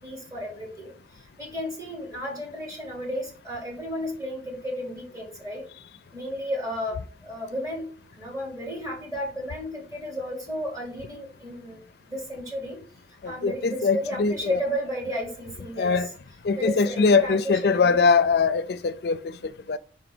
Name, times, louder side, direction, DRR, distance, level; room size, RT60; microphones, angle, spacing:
voice 1, 0.0-5.7 6.1-11.8 12.1-12.8 13.2-16.1 16.6-18.0, equal, 20° right, 3.5 m, -33 dB
voice 2, 13.2-14.6 15.8-16.1 16.4-19.8, left 4 dB, 60° left, 0.4 m, -22 dB
5.4 x 5.0 x 6.0 m
head